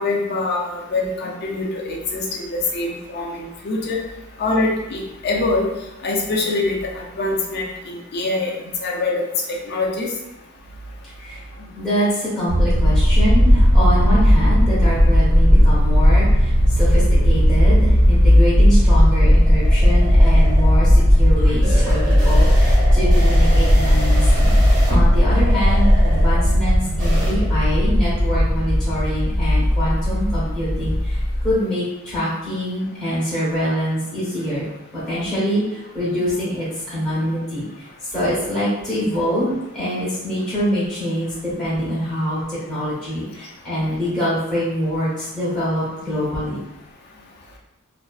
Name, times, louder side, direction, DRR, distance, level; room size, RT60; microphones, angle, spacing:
voice 1, 0.0-4.0 4.4-5.7 6.0-8.5 8.8-9.2 9.7-10.1, left 2 dB, 45° left, -1 dB, 0.4 m, -24 dB
voice 2, 11.8-24.6 24.9-34.7 34.9-37.9 38.1-46.7, equal, 5° left, -12 dB, 0.8 m, -25 dB
sound 1, 12.5-31.5, equal, 75° right, 1.2 m, -15 dB
sound 2, 18.4-27.3, right 1 dB, 35° right, 0.7 m, -31 dB
2.5 x 2.3 x 2.3 m, 0.92 s
head